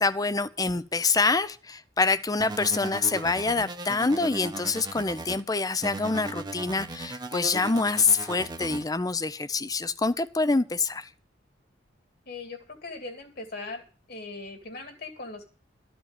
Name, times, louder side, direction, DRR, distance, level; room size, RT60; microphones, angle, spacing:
voice 1, 0.0-11.1, left 4 dB, 20° left, 15 dB, 0.6 m, -26 dB
sound 1, 2.4-5.4 5.8-8.8, right 2 dB, 25° right, 0.9 m, -37 dB
voice 2, 12.3-13.8 14.1-15.4, left 3 dB, 55° left, 5 dB, 2.7 m, -39 dB
13.5 x 5.2 x 8.9 m, 0.37 s
head